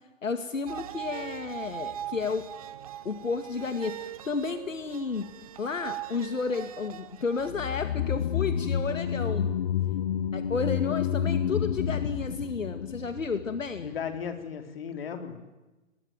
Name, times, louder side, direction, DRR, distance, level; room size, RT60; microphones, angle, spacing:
voice 1, 0.2-2.5 3.0-9.5 10.3-13.9, left 4 dB, 80° left, 9 dB, 2.3 m, -32 dB
sound 1, 0.7-7.5, right 12 dB, 30° right, 0.9 m, -41 dB
sound 2, 7.5-13.9 14.1-14.2, left 9 dB, 30° left, 1.1 m, -29 dB
voice 2, 13.8-15.4, left 7 dB, 45° left, 7 dB, 3.9 m, -36 dB
28.0 x 21.5 x 9.3 m, 1.1 s
hypercardioid pair, 150°, 39 cm